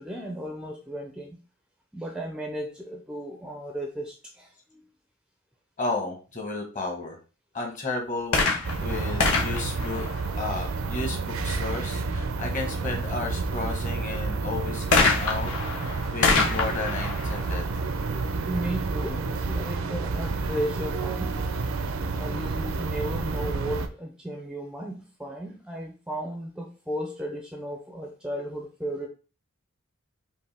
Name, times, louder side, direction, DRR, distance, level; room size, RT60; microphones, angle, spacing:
voice 1, 0.0-1.4 1.9-4.8 18.5-21.4 22.2-29.1, equal, 5° right, 2 dB, 0.4 m, -35 dB
voice 2, 5.8-7.2 7.5-8.4 8.8-10.1 10.3-15.5 15.8-17.6, left 3 dB, 35° left, 1 dB, 1.2 m, -33 dB
sound 1, 8.2-10.8 14.9-18.5 19.3-19.4, left 3 dB, 80° left, 1.1 m, -26 dB
sound 2, 8.6-23.9, right 3 dB, 65° right, 0.5 m, -30 dB
5.3 x 2.7 x 3.4 m, 0.35 s
head